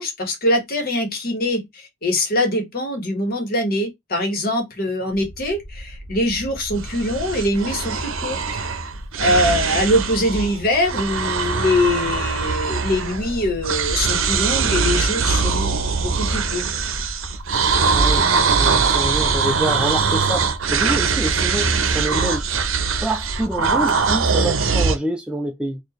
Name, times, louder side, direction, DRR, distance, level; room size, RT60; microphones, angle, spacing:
voice 1, 0.0-8.4 9.2-16.6, left 1 dB, 45° left, 1.3 m, -23 dB
sound 1, 5.1-24.4, equal, 85° left, 1.1 m, -35 dB
sound 2, 6.8-10.6 10.8-13.4 13.6-25.0, right 5 dB, 70° right, 0.7 m, -21 dB
voice 2, 17.9-20.5 20.7-22.5 23.0-25.8, right 1 dB, 5° right, 0.3 m, -26 dB
4.4 x 2.5 x 3.0 m
head